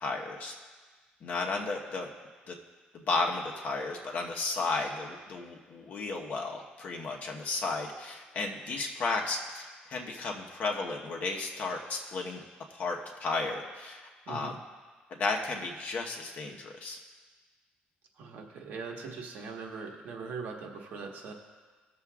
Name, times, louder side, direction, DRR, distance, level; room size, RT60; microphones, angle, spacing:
voice 1, 0.0-0.5 1.2-2.1 2.5-2.6 2.9-12.4 12.7-14.5 15.1-17.0, left 3 dB, 50° left, 1 dB, 1.1 m, -34 dB
voice 2, 18.1-21.3, right 4 dB, 65° right, 1 dB, 1.4 m, -41 dB
18.5 x 6.9 x 2.4 m, 1.4 s
cardioid pair, 140°, 3 cm